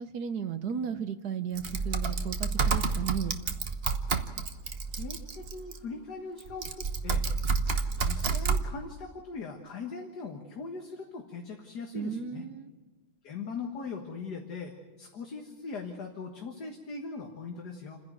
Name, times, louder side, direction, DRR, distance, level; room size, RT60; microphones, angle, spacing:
voice 1, 0.0-3.4 11.9-12.7, right 7 dB, 60° right, 10 dB, 1.3 m, -35 dB
Typing, 1.5-5.8 6.4-8.6, right 4 dB, 40° right, 1.0 m, -29 dB
voice 2, 4.9-7.2 8.0-12.4 13.2-18.0, left 4 dB, 55° left, 2 dB, 2.0 m, -40 dB
29.0 x 10.5 x 9.3 m, 1.2 s
omnidirectional pair, 2.2 m